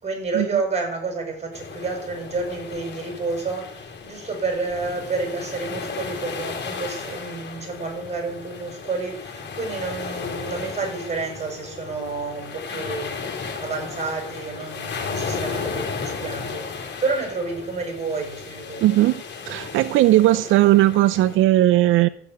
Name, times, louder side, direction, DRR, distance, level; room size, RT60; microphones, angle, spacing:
voice 1, 0.0-18.8 20.3-20.4, right 4 dB, 35° right, 3 dB, 6.5 m, -30 dB
sound 1, 1.5-21.4, left 5 dB, 65° left, 3.9 m, -34 dB
voice 2, 18.8-22.1, right 15 dB, 90° right, 15 dB, 0.5 m, -17 dB
13.0 x 6.9 x 9.7 m, 0.63 s
cardioid pair, 90°, 20 cm